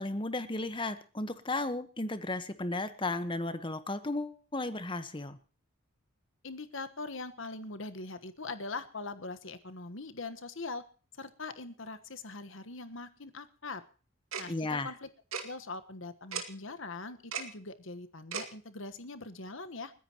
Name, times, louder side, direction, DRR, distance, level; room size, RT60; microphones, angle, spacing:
voice 1, 0.0-5.4 14.5-14.9, left 2 dB, 25° left, 11 dB, 1.2 m, -34 dB
voice 2, 6.4-10.8 11.2-13.8 14.4-15.1 15.4-19.9, left 3 dB, 65° left, 10 dB, 1.3 m, -42 dB
Tick-tock, 14.3-14.5 15.3-15.4 16.3-16.4 17.3-17.5 18.3-18.5, right 6 dB, 80° right, 2.1 m, -35 dB
29.5 x 10.0 x 3.0 m, 0.38 s
head